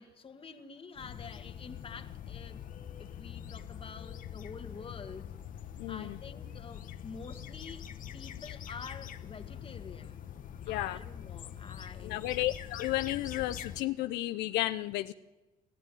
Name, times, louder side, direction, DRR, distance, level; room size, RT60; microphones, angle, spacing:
voice 1, 0.0-2.6 3.0-5.3 5.9-10.2 10.7-12.3, left 5 dB, 30° left, 1.8 m, -48 dB
sound 1, 1.0-13.8, left 9 dB, 55° left, 1.2 m, -44 dB
voice 2, 5.8-6.2 10.7-11.0 12.0-15.1, left 15 dB, 85° left, 0.7 m, -33 dB
28.5 x 14.5 x 9.2 m
cardioid pair, 110°, 17 cm